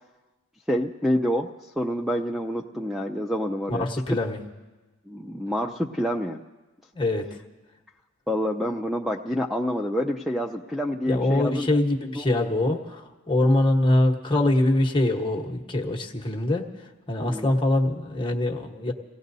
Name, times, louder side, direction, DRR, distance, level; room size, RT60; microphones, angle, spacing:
voice 1, 0.7-1.5 1.8-4.2 5.1-6.4 8.3-11.7 12.2-12.3 17.2-17.5, equal, ahead, 3 dB, 0.4 m, -27 dB
voice 2, 3.7-4.4 6.9-7.3 11.1-16.7 17.1-18.9, left 1 dB, 25° left, 1 dB, 1.1 m, -23 dB
28.0 x 17.5 x 2.7 m, 1.2 s
head